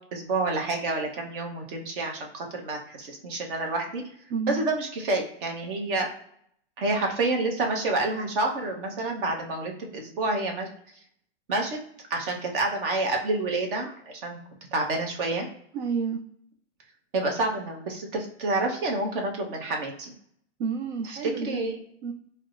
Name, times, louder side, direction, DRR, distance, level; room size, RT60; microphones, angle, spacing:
voice 1, 0.1-4.0 4.5-6.1 6.8-10.7 11.5-11.8 12.1-14.4 14.7-15.5 17.1-20.1 21.1-21.8, right 2 dB, 50° right, 2 dB, 0.9 m, -28 dB
voice 2, 4.3-4.6 15.7-16.2 20.6-21.6 22.0-22.1, right 6 dB, 65° right, 4 dB, 0.5 m, -30 dB
4.6 x 2.1 x 2.5 m, 0.68 s
supercardioid pair, 165°, 35 cm